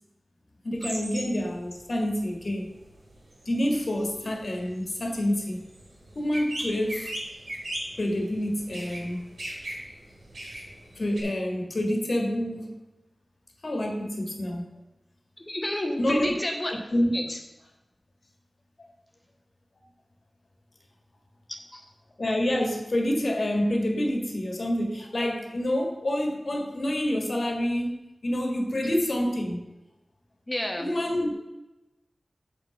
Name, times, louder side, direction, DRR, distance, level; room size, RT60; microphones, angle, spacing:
voice 1, 0.6-2.7 3.4-5.6 6.1-7.1 8.0-9.2 10.9-12.8 13.6-14.7 16.0-16.3 16.7-17.2 18.8-18.9 22.2-27.9 28.2-29.6 30.8-31.3, left 1 dB, 55° left, 2 dB, 1.7 m, -27 dB
sound 1, 0.8-1.5 1.8-11.2, right 1 dB, 75° right, 3.2 m, -39 dB
voice 2, 15.5-16.7 17.1-17.4 21.7-21.8 30.5-30.9, left 1 dB, 25° left, 3 dB, 1.1 m, -30 dB
7.6 x 5.8 x 5.1 m, 0.97 s
wide cardioid pair, 75°, 0 cm